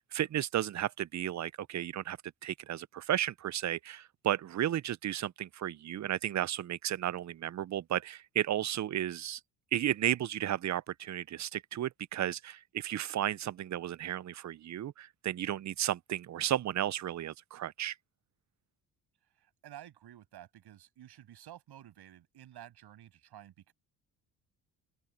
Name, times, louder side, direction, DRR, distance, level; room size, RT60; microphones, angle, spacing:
voice 1, 0.0-2.2 2.4-9.4 9.7-17.9, right 11 dB, 40° right, 0.7 m, -33 dB
voice 2, 19.4-23.7, right 12 dB, 65° right, 7.7 m, -52 dB
open air
hypercardioid pair, 60°, 42 cm